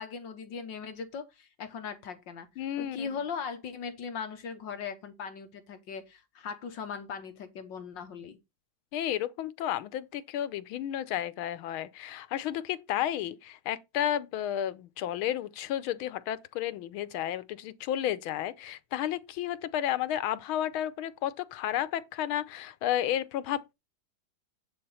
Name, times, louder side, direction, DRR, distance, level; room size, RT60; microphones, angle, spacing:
voice 1, 0.0-2.5 2.8-8.4, left 6 dB, 65° left, 1.7 m, -39 dB
voice 2, 2.6-3.1 8.9-23.7, left 11 dB, 85° left, 1.6 m, -32 dB
9.8 x 4.3 x 5.6 m
omnidirectional pair, 2.2 m